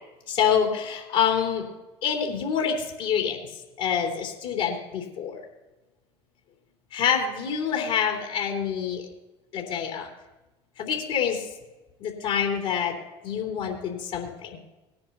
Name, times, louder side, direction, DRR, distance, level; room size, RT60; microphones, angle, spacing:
voice 1, 0.3-1.6 2.0-3.4 3.8-5.4 6.9-9.0 9.5-10.1 10.8-11.4 12.0-12.9 13.2-14.6, left 7 dB, 60° left, 0 dB, 3.3 m, -26 dB
19.5 x 10.5 x 2.8 m, 1.1 s
hypercardioid pair, 65°, 14 cm